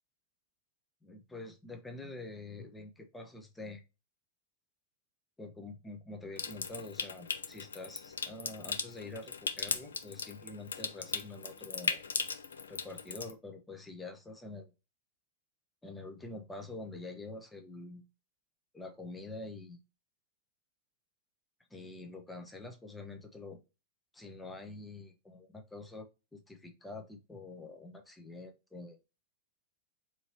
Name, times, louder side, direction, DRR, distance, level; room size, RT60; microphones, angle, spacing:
voice 1, 1.0-3.8 5.4-12.0 12.7-14.7 15.8-18.1 18.7-19.8 21.7-23.6 24.1-29.0, left 2 dB, 10° left, 3 dB, 0.7 m, -46 dB
Water tap faucet / Sink (filling or washing) / Trickle dribble, 6.4-13.3, left 5 dB, 75° left, 0.4 m, -38 dB
2.8 x 2.7 x 2.7 m, 0.28 s
figure-of-eight pair, 90°, 0 cm